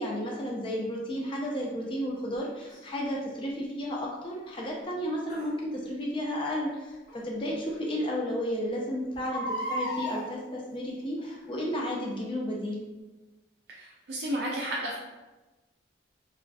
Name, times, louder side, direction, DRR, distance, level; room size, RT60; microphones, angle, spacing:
voice 1, 0.0-12.8, equal, 25° left, -2 dB, 0.4 m, -32 dB
Crying sobbing, 2.7-2.8 5.3-5.5 7.1-7.2 7.7-7.8 8.0-8.1 9.1-10.2 11.2-11.5 12.1-12.2, equal, 45° left, 0.9 m, -34 dB
voice 2, 13.8-15.0, right 1 dB, 55° right, -4 dB, 0.3 m, -32 dB
2.4 x 2.3 x 2.2 m, 1.1 s
head